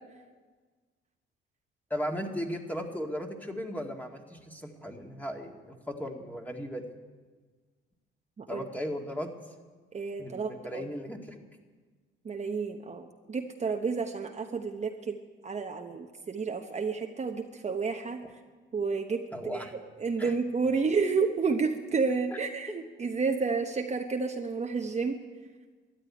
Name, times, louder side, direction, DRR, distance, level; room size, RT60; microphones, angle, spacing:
voice 1, 1.9-6.8 8.5-9.3 10.2-11.4 19.3-19.7 20.2-20.3 22.3-22.4, equal, 10° left, 2 dB, 2.1 m, -36 dB
voice 2, 9.9-10.8 12.2-15.2 15.4-18.2 18.7-25.2, right 4 dB, 35° right, 4 dB, 1.0 m, -31 dB
13.0 x 11.0 x 9.7 m, 1.4 s
cardioid pair, 90°, 20 cm